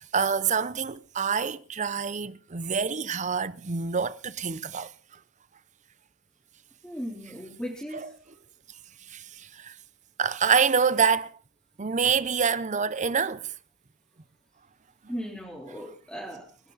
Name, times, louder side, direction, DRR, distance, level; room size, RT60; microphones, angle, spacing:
voice 1, 0.0-4.9 7.9-8.1 9.1-9.8 10.2-11.4 11.8-13.5, right 6 dB, 35° right, 0.7 m, -26 dB
voice 2, 6.8-8.0 15.1-16.4, equal, 5° left, 3.9 m, -37 dB
27.5 x 11.5 x 4.1 m
head